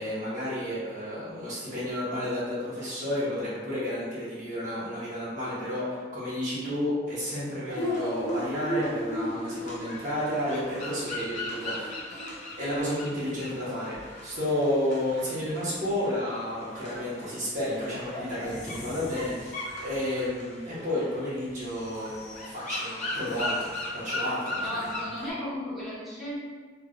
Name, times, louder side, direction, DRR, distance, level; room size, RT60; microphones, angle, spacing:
voice 1, 0.0-12.0 12.6-19.5 19.8-24.7, left 1 dB, 45° right, -9 dB, 1.0 m, -31 dB
sound 1, 7.7-25.3, left 1 dB, 40° left, 0.5 m, -36 dB
voice 2, 24.6-26.4, left 1 dB, ahead, -12 dB, 0.8 m, -35 dB
3.0 x 2.3 x 2.5 m, 1.4 s
head